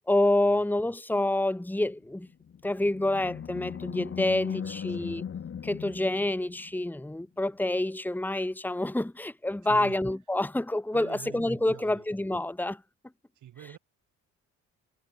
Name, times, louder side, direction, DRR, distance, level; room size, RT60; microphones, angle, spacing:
voice 1, 0.1-2.3 2.6-5.2 5.6-12.8, left 1 dB, 5° left, 1.9 m, -28 dB
Animal, 2.3-6.9, left 8 dB, 45° left, 2.0 m, -38 dB
voice 2, 4.3-5.1 9.6-10.0 10.9-12.0 13.3-13.8, right 12 dB, 75° right, 6.7 m, -46 dB
cardioid pair, 90°, 30 cm